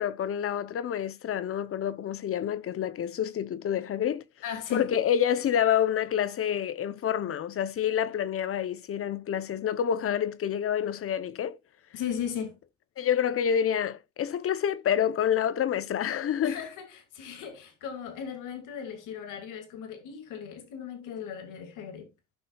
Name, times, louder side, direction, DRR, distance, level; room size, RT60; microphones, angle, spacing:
voice 1, 0.0-4.2 4.7-11.6 13.0-16.6, left 9 dB, 45° left, 0.8 m, -28 dB
voice 2, 4.4-4.9 11.9-12.6 16.4-22.1, left 8 dB, 80° left, 2.4 m, -37 dB
15.0 x 5.7 x 2.4 m
cardioid pair, 100°, 31 cm